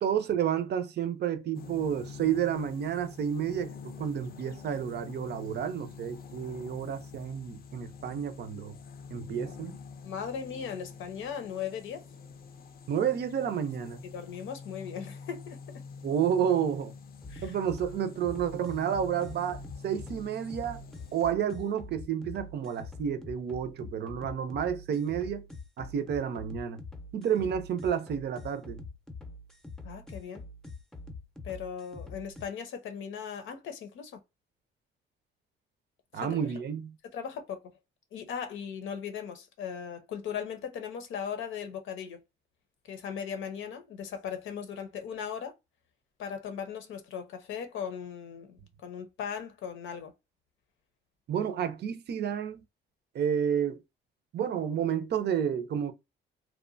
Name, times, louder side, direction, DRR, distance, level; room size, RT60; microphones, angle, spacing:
voice 1, 0.0-8.8 9.1-9.8 12.9-14.0 16.0-16.9 17.4-20.8 21.1-25.5 25.8-26.8 27.1-28.8 36.1-37.0 51.3-52.6 53.1-53.8 54.3-55.9, right 8 dB, 55° right, 0.5 m, -30 dB
sound 1, 1.5-21.3, left 5 dB, 50° left, 0.5 m, -46 dB
voice 2, 10.0-12.0 14.1-15.8 17.3-17.5 29.8-30.4 31.4-34.2 36.1-36.5 37.1-37.6 38.1-42.2 42.9-45.5 46.2-50.1, left 7 dB, 80° left, 0.7 m, -38 dB
sound 2, 17.2-32.5, left 3 dB, ahead, 0.6 m, -45 dB
2.9 x 2.2 x 2.5 m
cardioid pair, 90°, 20 cm